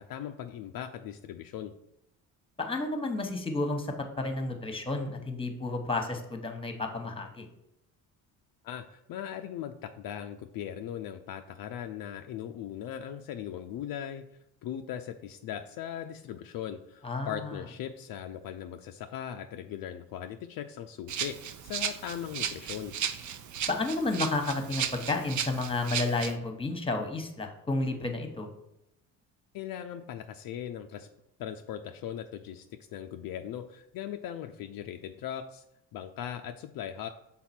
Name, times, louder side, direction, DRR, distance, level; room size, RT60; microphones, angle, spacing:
voice 1, 0.0-1.7 8.6-14.2 14.6-21.4 21.6-22.9 29.5-31.1 31.4-35.6 35.9-37.1, left 10 dB, 60° left, 6 dB, 0.5 m, -39 dB
voice 2, 2.6-3.9 4.2-7.5 17.0-17.6 23.7-28.5, left 2 dB, 15° left, 5 dB, 1.2 m, -31 dB
Rattle (instrument), 21.1-26.3, right 8 dB, 45° right, 0.6 m, -35 dB
5.9 x 3.8 x 4.4 m, 0.84 s
supercardioid pair, 75°, 40 cm